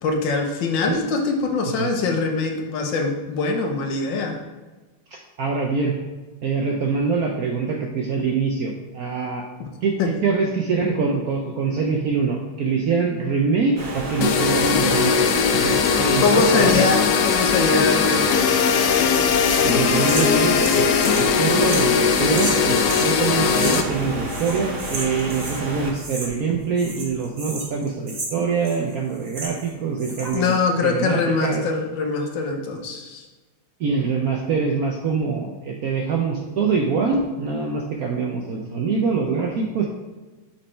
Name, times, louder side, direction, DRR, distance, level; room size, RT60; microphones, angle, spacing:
voice 1, 0.0-4.4 9.6-9.7 10.0-10.1 16.2-18.6 30.3-33.2, left 4 dB, 70° left, 3 dB, 1.5 m, -23 dB
voice 2, 5.1-6.0 6.4-9.4 9.8-16.9 19.6-30.5 30.8-31.6 33.8-39.9, right 5 dB, 70° right, 1 dB, 0.9 m, -24 dB
sound 1, 13.8-25.9, right 2 dB, 55° right, 1.6 m, -30 dB
sound 2, 14.2-23.8, left 7 dB, 90° left, 0.8 m, -20 dB
sound 3, 19.0-23.1 23.5-24.0 24.2-25.6 25.9-26.5 26.8-29.7 30.0-30.5, right 2 dB, 35° right, 1.2 m, -33 dB
6.0 x 4.4 x 4.3 m, 1.3 s
omnidirectional pair, 2.2 m